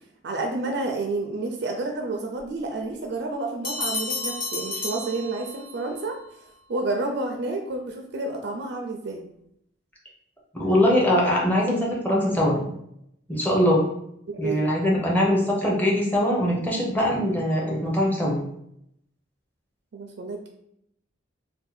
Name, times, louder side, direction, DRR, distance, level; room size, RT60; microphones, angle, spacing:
voice 1, 0.2-6.2 6.7-9.2 14.3-14.6 19.9-20.5, right 2 dB, 55° right, 2 dB, 0.4 m, -30 dB
Bell, 3.6-5.9, left 3 dB, 45° left, 0.7 m, -31 dB
voice 2, 10.5-12.6 13.3-13.9 14.4-18.4, left 1 dB, 10° left, -4 dB, 0.7 m, -22 dB
2.7 x 2.2 x 4.0 m, 0.74 s
head